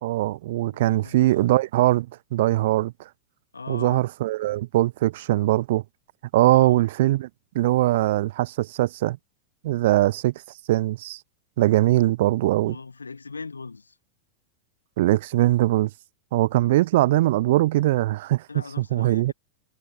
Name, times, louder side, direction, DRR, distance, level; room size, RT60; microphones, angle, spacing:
voice 1, 0.0-2.9 3.7-5.8 6.3-7.3 7.5-9.2 9.6-10.3 10.7-11.2 11.6-12.7 15.0-15.9 16.3-18.4 18.9-19.3, right 16 dB, 55° right, 0.8 m, -21 dB
voice 2, 0.7-1.5 3.5-4.1 6.3-6.8 12.7-14.0 18.5-19.3, left 4 dB, 75° left, 4.1 m, -39 dB
figure-of-eight pair, 90°, 0 cm